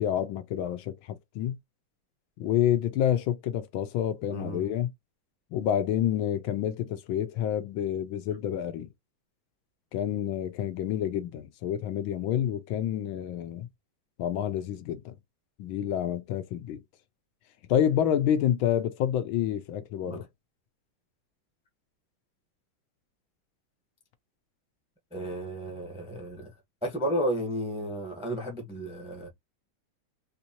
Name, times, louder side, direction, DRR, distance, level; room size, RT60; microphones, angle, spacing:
voice 1, 0.0-1.6 2.4-4.9 5.5-8.9 9.9-13.7 14.2-15.1 15.6-16.8 17.7-20.3, left 10 dB, 80° left, 1.4 m, -28 dB
voice 2, 4.3-4.6 20.0-20.2 25.1-26.5 26.8-29.3, equal, 5° right, 0.6 m, -33 dB
4.4 x 2.6 x 2.8 m
omnidirectional pair, 2.2 m